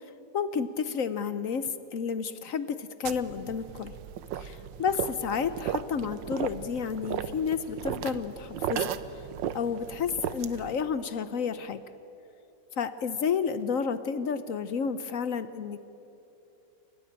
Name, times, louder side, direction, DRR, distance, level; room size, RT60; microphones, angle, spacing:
voice 1, 0.3-3.9 4.4-9.2 9.5-11.8 12.8-15.8, left 6 dB, 60° left, 13 dB, 1.0 m, -31 dB
sound 1, 3.1-10.8, right 9 dB, 85° right, 1.5 m, -35 dB
28.5 x 15.5 x 8.9 m, 2.9 s
omnidirectional pair, 1.9 m